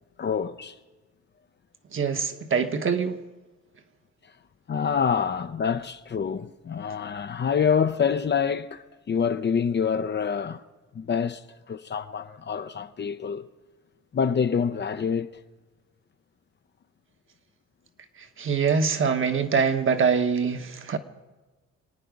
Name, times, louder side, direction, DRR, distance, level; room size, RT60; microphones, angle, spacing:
voice 1, 0.2-0.7 4.7-10.6 10.9-11.4 11.7-13.5 14.1-15.4, left 6 dB, 35° left, 0.6 m, -26 dB
voice 2, 1.9-3.2 18.4-21.0, right 6 dB, 45° right, 1.2 m, -24 dB
26.5 x 9.2 x 5.3 m
cardioid pair, 90°, 30 cm